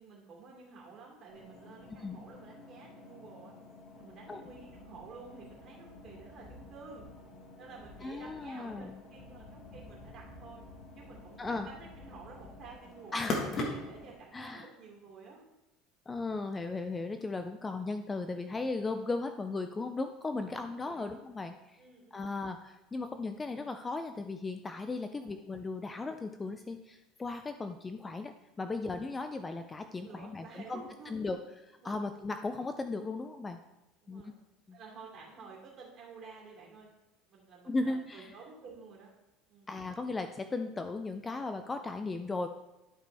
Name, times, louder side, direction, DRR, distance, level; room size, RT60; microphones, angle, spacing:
voice 1, 0.0-3.5 4.0-7.1 7.6-10.7 10.9-15.4 20.3-20.5 20.8-21.1 21.8-22.2 25.2-25.4 30.0-31.3 31.8-32.0 34.0-34.3 34.7-36.9 37.3-39.1 39.5-39.7, right 4 dB, 35° right, -3 dB, 2.8 m, -51 dB
sound 1, 1.3-14.1, left 2 dB, 35° left, 1.4 m, -44 dB
voice 2, 8.0-9.0 11.4-11.7 13.1-13.7 14.3-14.7 16.1-21.8 22.1-31.4 31.8-33.6 34.1-34.3 34.7-34.8 37.7-38.3 39.7-42.5, left 3 dB, 15° left, 7 dB, 0.3 m, -36 dB
11.5 x 5.0 x 3.4 m, 0.99 s
cardioid pair, 155°, 0 cm